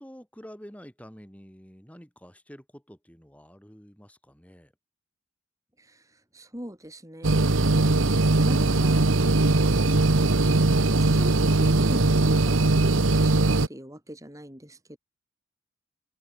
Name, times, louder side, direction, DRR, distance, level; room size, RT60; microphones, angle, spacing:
voice 1, 0.0-4.7, equal, 5° left, 6.9 m, -48 dB
voice 2, 5.8-9.1 10.6-15.0, equal, 15° right, 4.7 m, -41 dB
sound 1, 7.2-13.7, right 2 dB, 75° right, 1.2 m, -20 dB
open air
head